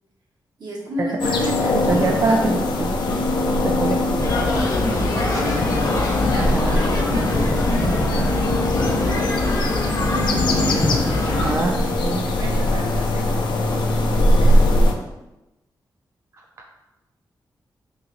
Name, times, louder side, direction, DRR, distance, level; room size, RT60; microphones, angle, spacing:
voice 1, 0.6-2.6 5.0-7.9 9.0-11.8 12.4-14.7, right 1 dB, 65° right, -3 dB, 1.0 m, -34 dB
sound 1, 1.2-14.9, left 1 dB, 85° left, 0.5 m, -21 dB
voice 2, 1.9-3.2 3.6-4.3 6.4-6.8 7.8-8.3 11.3-12.3, right 3 dB, 35° right, 0 dB, 0.4 m, -24 dB
sound 2, 4.2-11.5, left 2 dB, 50° left, 0.8 m, -24 dB
2.9 x 2.8 x 3.8 m, 0.98 s
cardioid pair, 90°, 8 cm